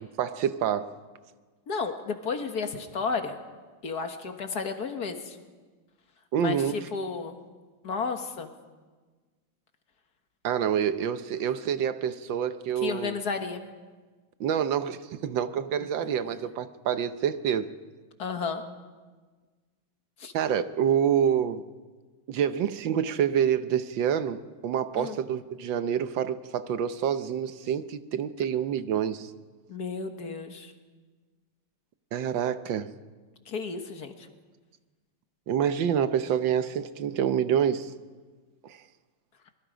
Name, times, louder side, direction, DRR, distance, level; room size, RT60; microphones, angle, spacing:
voice 1, 0.2-0.9 6.3-6.9 10.4-13.2 14.4-17.7 20.3-21.6 22.3-29.3 32.1-32.9 35.5-37.9 38.6-38.8, right 8 dB, 80° right, 1.6 m, -27 dB
voice 2, 1.7-3.4 3.8-5.4 6.4-7.4 7.8-8.5 12.8-13.6 18.2-18.6 20.2-20.3 25.0-25.2 29.7-30.7 33.5-34.2, left 5 dB, 55° left, 1.8 m, -32 dB
24.0 x 21.5 x 5.1 m
omnidirectional pair, 2.1 m